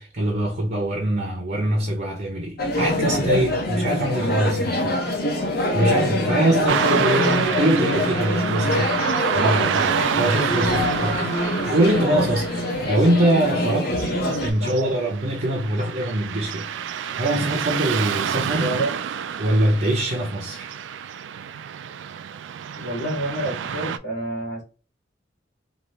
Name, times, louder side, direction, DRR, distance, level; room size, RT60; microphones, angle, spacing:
voice 1, 0.0-5.0 5.7-9.0 9.3-13.9 14.4-18.7 19.4-20.7, right 1 dB, 50° right, 0.7 m, -23 dB
sound 1, 2.6-14.5, left 1 dB, 55° left, 0.8 m, -24 dB
voice 2, 6.5-7.1 9.9-10.1 14.6-14.9 18.5-19.0 22.8-24.6, right 1 dB, 85° left, 1.5 m, -28 dB
Car passing by / Traffic noise roadway noise, 6.7-24.0, right 8 dB, 75° right, 0.3 m, -28 dB
3.2 x 2.4 x 2.8 m
head